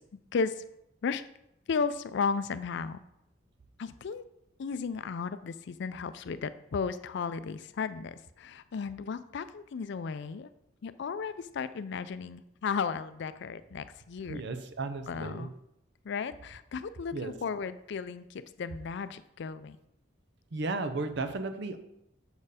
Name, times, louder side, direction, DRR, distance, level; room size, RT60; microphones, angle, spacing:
voice 1, 0.3-0.6 1.0-1.2 1.7-3.0 3.8-4.2 4.6-10.5 10.8-14.4 15.1-15.5 16.0-19.8, left 5 dB, 65° left, 13 dB, 0.4 m, -34 dB
voice 2, 14.3-15.5 17.1-17.3 20.5-21.8, right 3 dB, 65° right, 9 dB, 0.6 m, -34 dB
6.9 x 4.5 x 4.9 m, 0.81 s
head